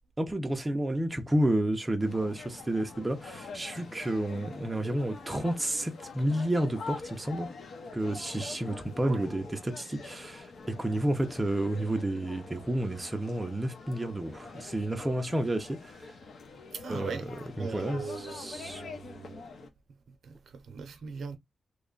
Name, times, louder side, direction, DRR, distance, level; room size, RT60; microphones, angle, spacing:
voice 1, 0.2-7.5 7.9-16.1 16.9-18.8, right 1 dB, 15° right, 0.5 m, -31 dB
sound 1, 2.0-19.7, left 4 dB, 65° left, 0.8 m, -45 dB
voice 2, 16.7-17.3 17.6-19.4 20.1-21.4, right 5 dB, 65° right, 0.6 m, -40 dB
3.1 x 2.2 x 3.6 m
wide cardioid pair, 170°, 0 cm